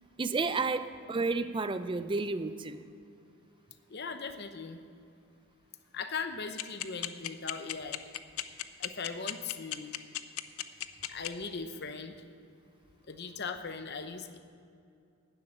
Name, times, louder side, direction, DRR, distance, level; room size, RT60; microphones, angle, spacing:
voice 1, 0.2-2.8, right 3 dB, 20° right, 11 dB, 0.4 m, -31 dB
voice 2, 3.9-4.8 5.9-8.0 8.8-10.0 11.1-12.2 13.1-14.4, left 5 dB, 50° left, 8 dB, 0.8 m, -39 dB
sound 1, 6.6-11.3, left 13 dB, 85° left, 0.6 m, -34 dB
12.0 x 7.8 x 9.0 m, 2.5 s
head